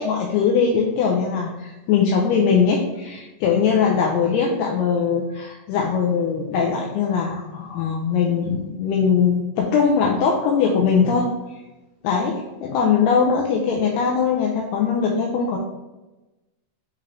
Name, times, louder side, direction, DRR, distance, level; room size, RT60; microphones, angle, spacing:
voice 1, 0.0-11.3 12.0-15.6, left 6 dB, 85° left, -1 dB, 2.3 m, -21 dB
6.7 x 2.5 x 3.2 m, 1.1 s
omnidirectional pair, 4.9 m